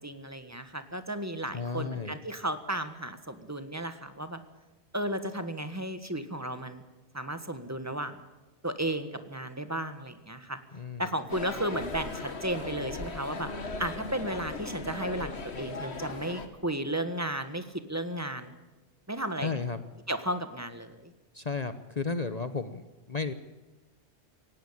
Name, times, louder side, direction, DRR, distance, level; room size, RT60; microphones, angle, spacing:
voice 1, 0.0-4.4 4.9-6.8 7.1-8.2 8.6-10.6 11.0-13.5 13.8-18.5 19.1-19.6 20.1-21.1, right 1 dB, 15° right, 9 dB, 1.6 m, -34 dB
voice 2, 1.5-2.2 10.7-11.1 19.4-19.8 21.3-23.3, left 4 dB, 40° left, 11 dB, 0.9 m, -33 dB
sound 1, 11.3-16.5, left 3 dB, 75° left, 2.0 m, -38 dB
18.0 x 17.0 x 8.7 m, 1.1 s
omnidirectional pair, 1.1 m